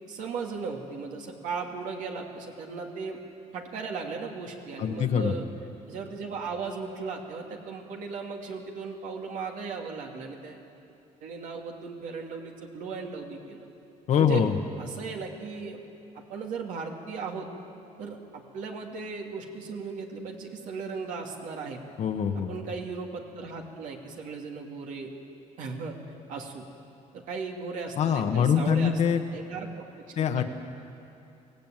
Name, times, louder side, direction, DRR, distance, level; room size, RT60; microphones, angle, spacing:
voice 1, 0.1-3.2 3.5-5.5 5.9-10.6 11.2-13.7 14.1-14.5 14.8-15.8 16.1-17.5 18.0-21.8 22.5-25.1 25.6-26.0 26.3-26.7 27.1-29.9 30.2-30.4, right 4 dB, 75° right, 1 dB, 2.6 m, -37 dB
voice 2, 4.8-5.3 14.1-14.5 22.0-22.5 28.0-29.2 30.2-30.4, left 7 dB, 60° left, 5 dB, 1.4 m, -24 dB
24.0 x 17.0 x 9.2 m, 2.8 s
cardioid pair, 120°, 13 cm